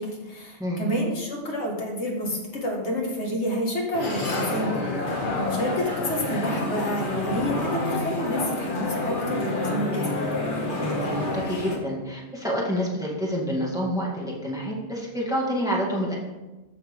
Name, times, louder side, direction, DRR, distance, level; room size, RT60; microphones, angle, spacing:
voice 1, 0.0-10.2, equal, 70° left, -1 dB, 1.9 m, -29 dB
sound 1, 3.9-11.8, left 2 dB, 45° left, 1.5 m, -28 dB
voice 2, 10.7-16.2, equal, 5° right, -3 dB, 1.7 m, -28 dB
13.5 x 5.9 x 3.5 m, 1.1 s
omnidirectional pair, 1.2 m